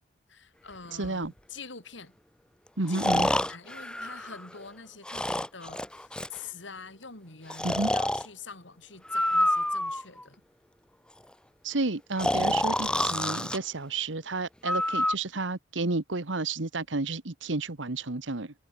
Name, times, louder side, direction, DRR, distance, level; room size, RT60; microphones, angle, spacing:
voice 1, 0.3-2.2 2.9-10.4, left 4 dB, 70° left, 4.7 m, -45 dB
Breathing, 1.0-1.1 2.9-4.6 5.0-6.4 7.5-8.3 9.0-10.2 12.2-13.6 14.6-15.1, left 1 dB, 5° left, 0.7 m, -28 dB
voice 2, 1.0-1.3 2.8-3.3 7.6-7.9 11.6-18.5, right 3 dB, 75° right, 1.5 m, -31 dB
head